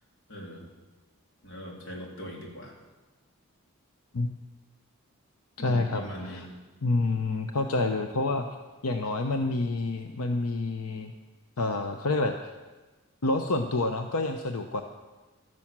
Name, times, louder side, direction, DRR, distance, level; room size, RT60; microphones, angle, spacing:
voice 1, 0.3-0.7 1.4-2.8 5.6-6.5, equal, 60° left, -1 dB, 3.4 m, -40 dB
voice 2, 5.6-6.5 6.8-8.4 8.8-11.1 11.6-12.3 13.2-14.8, left 2 dB, 90° left, 5 dB, 0.8 m, -28 dB
13.0 x 10.5 x 7.4 m, 1.2 s
head